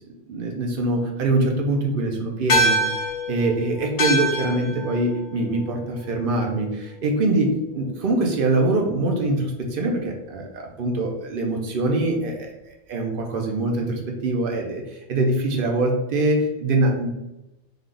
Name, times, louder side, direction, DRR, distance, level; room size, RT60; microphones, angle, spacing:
voice 1, 0.3-12.5 12.9-17.1, right 2 dB, 55° right, 1 dB, 0.8 m, -23 dB
sound 1, 2.5-7.2, right 1 dB, 55° left, 0.6 m, -26 dB
3.4 x 2.3 x 3.7 m, 0.94 s
omnidirectional pair, 1.3 m